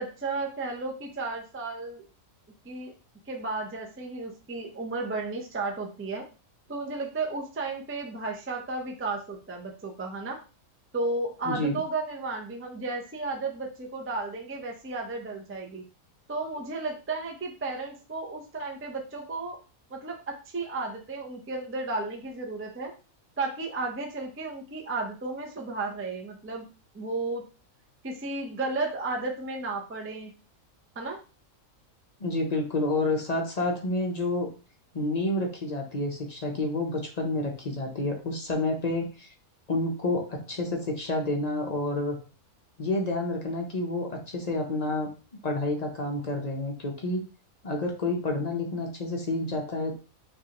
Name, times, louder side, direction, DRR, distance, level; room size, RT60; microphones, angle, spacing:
voice 1, 0.0-2.1 2.6-2.9 3.3-6.3 6.7-10.4 10.9-15.8 16.3-19.6 19.9-22.9 23.4-26.7 26.9-27.5 28.0-30.3 31.0-31.2, right 3 dB, 20° right, 1 dB, 0.3 m, -33 dB
voice 2, 32.2-34.5 34.9-39.3 39.7-42.2 42.8-45.1 45.4-47.2 47.6-49.9, left 2 dB, 40° left, 1 dB, 0.6 m, -29 dB
5.4 x 2.5 x 2.9 m, 0.35 s
omnidirectional pair, 1.5 m